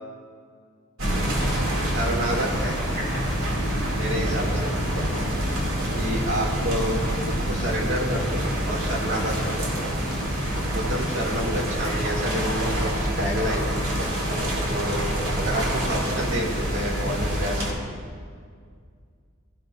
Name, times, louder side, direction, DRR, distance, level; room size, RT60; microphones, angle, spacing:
sound 1, 1.0-17.7, equal, 85° right, 2.3 m, -26 dB
voice 1, 1.9-2.8 4.0-4.7 5.9-7.0 7.3-9.7 10.7-13.8 14.7-17.9, equal, 60° right, -2 dB, 2.2 m, -29 dB
Wind instrument woodwind instrument, 10.9-15.9, equal, 40° right, 1.3 m, -43 dB
15.5 x 15.0 x 2.5 m, 2.1 s
head